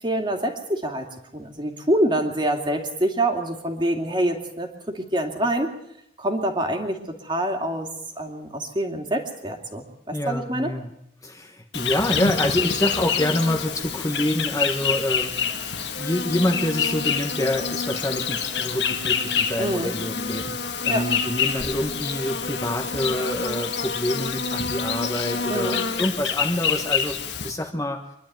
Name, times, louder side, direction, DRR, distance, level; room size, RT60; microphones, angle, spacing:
voice 1, 0.0-1.1 1.3-5.7 6.2-7.9 8.2-10.7 19.6-19.9 20.9-21.1 25.5-25.8, right 1 dB, 25° right, 4 dB, 2.4 m, -26 dB
voice 2, 10.1-10.9 11.2-15.4 16.0-20.6 20.8-27.2 27.4-28.0, left 1 dB, 20° left, 5 dB, 1.3 m, -26 dB
Insect, 11.7-27.5, left 6 dB, 80° left, 1.8 m, -27 dB
25.0 x 11.5 x 9.2 m, 0.79 s
head